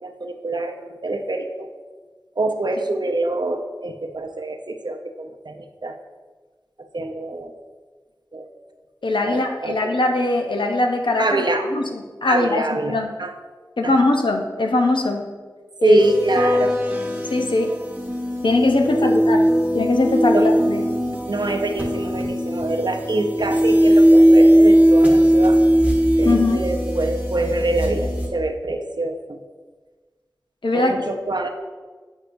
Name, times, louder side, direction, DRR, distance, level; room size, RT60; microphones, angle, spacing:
voice 1, 0.0-1.7 2.4-6.0 6.9-7.5 8.3-8.5 9.3-10.0 11.2-11.7 12.3-13.3 13.8-14.1 15.8-16.8 19.0-19.2 20.3-20.5 21.3-25.6 26.2-29.4 30.7-31.5, right 2 dB, 65° right, 5 dB, 0.6 m, -25 dB
voice 2, 9.0-11.4 11.7-13.1 13.8-15.3 15.8-16.0 17.3-17.7 18.4-19.4 19.7-20.8 26.2-26.6 30.6-31.0, left 2 dB, 85° left, 3 dB, 0.6 m, -21 dB
sound 1, 16.0-28.3, equal, 15° right, 0.9 m, -18 dB
8.0 x 5.3 x 2.6 m, 1.4 s
wide cardioid pair, 45°, 8 cm